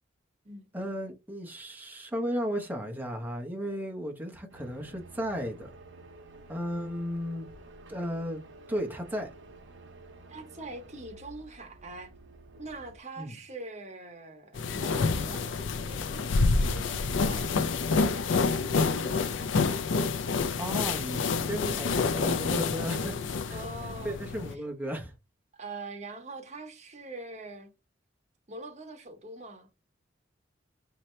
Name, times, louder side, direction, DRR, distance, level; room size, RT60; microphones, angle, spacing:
voice 1, 0.7-5.7 6.5-7.5 7.9-8.4 8.7-9.3 13.2-13.4 20.6-23.6 24.0-25.1, equal, 10° right, 1.0 m, -34 dB
sound 1, 4.5-13.0, right 1 dB, 65° right, 1.0 m, -51 dB
voice 2, 10.3-12.1 12.6-19.4 23.5-24.2 24.5-24.6 25.5-27.7 28.5-29.7, right 2 dB, 35° right, 1.1 m, -44 dB
sound 2, 14.5-24.5, left 4 dB, 75° left, 0.4 m, -28 dB
4.3 x 2.8 x 3.2 m
head